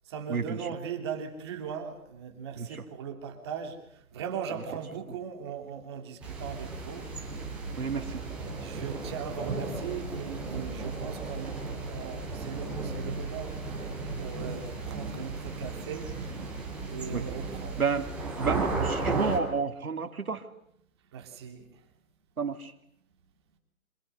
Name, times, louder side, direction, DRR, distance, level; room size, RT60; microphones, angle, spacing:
voice 1, 0.0-7.1 8.3-16.1 16.9-17.8 21.1-21.8, right 7 dB, 20° right, 4 dB, 3.0 m, -39 dB
sound 1, 6.2-19.4, right 3 dB, ahead, 3.6 m, -35 dB
voice 2, 7.8-8.2 17.1-17.2 17.8-18.1 18.4-20.4 22.4-22.7, right 5 dB, 90° right, 6 dB, 2.9 m, -30 dB
29.0 x 26.5 x 6.8 m, 0.70 s
hypercardioid pair, 175°, 42 cm